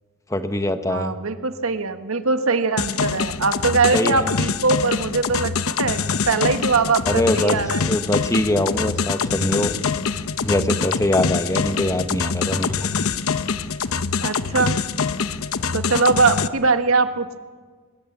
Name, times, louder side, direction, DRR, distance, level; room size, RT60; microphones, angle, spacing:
voice 1, 0.3-1.1 3.9-4.3 7.1-7.6 7.9-9.7 10.4-12.9, left 1 dB, 15° left, 9 dB, 1.2 m, -22 dB
voice 2, 0.9-5.5 5.8-7.8 14.2-14.8 15.7-17.4, right 4 dB, 75° right, 9 dB, 1.4 m, -21 dB
sound 1, 2.8-16.5, left 5 dB, 80° left, 0.8 m, -24 dB
22.5 x 20.5 x 7.2 m, 1.5 s
head